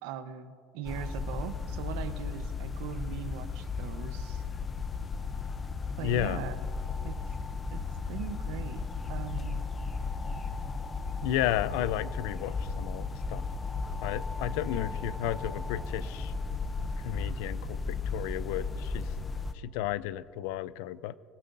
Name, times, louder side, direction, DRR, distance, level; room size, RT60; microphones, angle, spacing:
voice 1, 0.0-4.4 6.0-6.6 7.0-7.2 7.7-7.8 8.1-9.7, right 10 dB, 85° right, 10 dB, 0.9 m, -40 dB
sound 1, 0.8-19.5, left 4 dB, 20° left, 0.6 m, -35 dB
voice 2, 6.0-6.4 11.2-13.4 14.0-16.3 17.0-19.1 19.6-21.1, left 12 dB, 80° left, 17 dB, 0.5 m, -33 dB
24.5 x 17.0 x 2.6 m, 2.5 s
cardioid pair, 145°, 0 cm